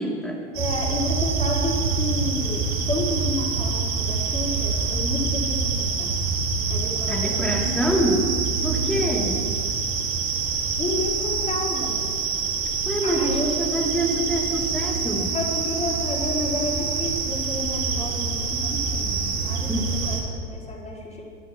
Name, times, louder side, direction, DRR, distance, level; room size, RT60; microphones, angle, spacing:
voice 1, 0.0-0.4 7.1-8.3 8.6-9.5 12.9-15.3 19.7-19.9, right 1 dB, ahead, -1 dB, 2.8 m, -25 dB
sound 1, 0.5-20.2, right 5 dB, 50° right, 3.7 m, -26 dB
voice 2, 0.6-6.1 6.7-8.0 8.7-9.4 10.8-12.0 13.0-13.6 15.3-21.2, left 2 dB, 20° left, -3 dB, 4.3 m, -31 dB
22.5 x 12.0 x 3.1 m, 2.1 s
hypercardioid pair, 85°, 35 cm